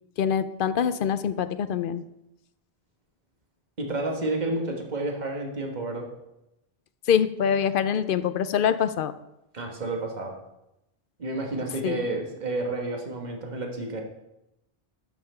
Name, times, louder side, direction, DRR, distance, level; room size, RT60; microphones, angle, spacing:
voice 1, 0.2-2.0 7.1-9.1 11.8-12.0, left 8 dB, 65° left, 13 dB, 0.7 m, -24 dB
voice 2, 3.8-6.1 9.5-10.4 11.2-14.0, right 2 dB, 45° right, 2 dB, 1.5 m, -30 dB
12.0 x 5.7 x 4.4 m, 0.90 s
omnidirectional pair, 1.1 m